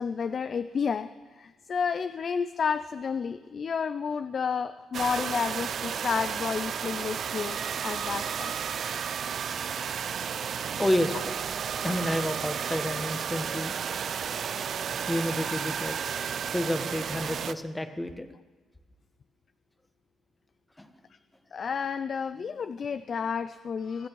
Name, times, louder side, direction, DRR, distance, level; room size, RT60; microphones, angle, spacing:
voice 1, 0.0-8.5 15.4-15.5 21.5-24.1, left 6 dB, 50° left, 12 dB, 0.5 m, -31 dB
sound 1, 4.9-17.5, right 7 dB, 60° right, 0.6 m, -32 dB
voice 2, 10.8-11.4 11.8-13.7 14.6-14.7 15.1-16.1 16.5-18.3 20.8-20.9, left 1 dB, 10° left, 8 dB, 1.3 m, -30 dB
24.5 x 8.7 x 4.7 m, 1.3 s
cardioid pair, 85°, 0 cm